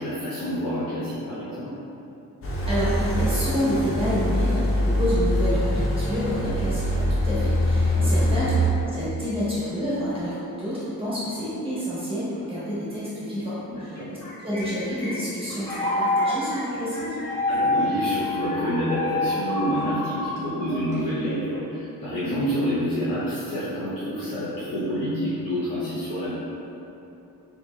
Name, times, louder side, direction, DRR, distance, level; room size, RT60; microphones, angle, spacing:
voice 1, 0.0-1.7 7.9-8.2 13.7-14.1 17.5-26.3, equal, 75° left, -12 dB, 0.8 m, -28 dB
sound 1, 2.4-8.7, equal, 40° left, 0.5 m, -23 dB
voice 2, 2.7-8.5 8.9-14.0 14.4-17.2, equal, 15° right, -11 dB, 1.2 m, -28 dB
sound 2, 14.0-21.5, left 2 dB, 10° left, 0.8 m, -28 dB
4.4 x 2.9 x 2.3 m, 3.0 s
wide cardioid pair, 145°, 35 cm